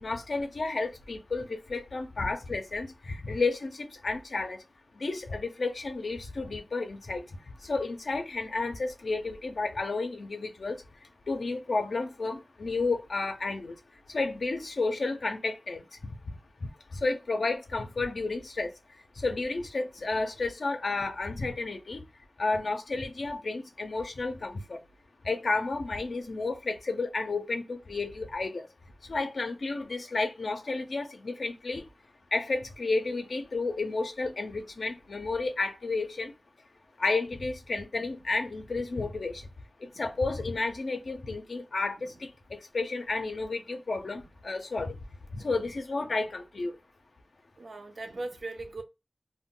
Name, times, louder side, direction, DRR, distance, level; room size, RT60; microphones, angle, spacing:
voice 1, 0.0-4.6 5.0-7.2 7.7-10.8 11.3-13.7 14.1-15.8 17.0-18.7 19.2-22.0 22.4-24.8 25.3-28.7 29.1-31.8 32.3-36.3 37.0-39.3 40.0-42.1 42.7-45.0 45.3-46.7, left 3 dB, 75° left, 0.4 m, -31 dB
voice 2, 47.6-48.8, right 2 dB, 75° right, 0.5 m, -41 dB
2.1 x 2.1 x 3.6 m
wide cardioid pair, 60°, 0 cm